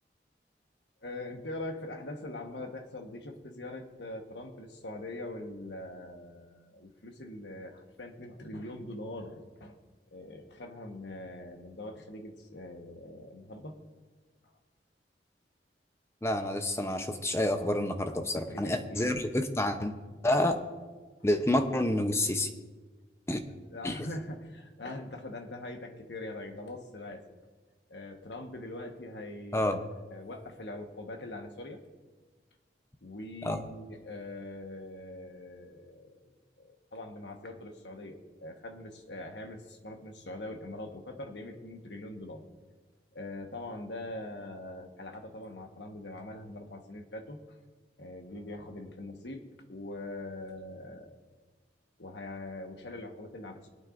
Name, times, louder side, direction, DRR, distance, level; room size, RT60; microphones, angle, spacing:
voice 1, 1.0-9.8 10.1-13.8 18.0-19.2 23.7-27.3 27.9-31.8 33.0-42.4 43.1-47.6 48.0-51.2 52.0-53.7, left 1 dB, 85° left, 4 dB, 1.3 m, -43 dB
voice 2, 16.2-19.9 20.2-20.6 21.2-22.5 23.3-23.4 23.8-24.1 29.5-29.8 33.4-33.6, left 1 dB, 15° left, 7 dB, 0.7 m, -28 dB
25.0 x 8.7 x 2.6 m, 1.4 s
head